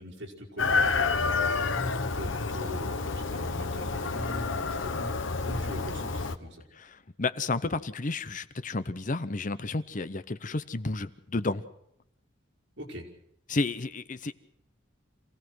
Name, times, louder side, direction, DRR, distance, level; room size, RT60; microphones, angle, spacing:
voice 1, 0.0-6.6 12.8-13.1, equal, 65° right, 0 dB, 4.9 m, -41 dB
Chicken rooster, 0.6-6.4, left 4 dB, 90° left, 1.1 m, -29 dB
voice 2, 7.2-11.6 13.5-14.3, left 3 dB, 45° left, 13 dB, 0.8 m, -31 dB
27.0 x 17.0 x 6.2 m, 0.74 s
head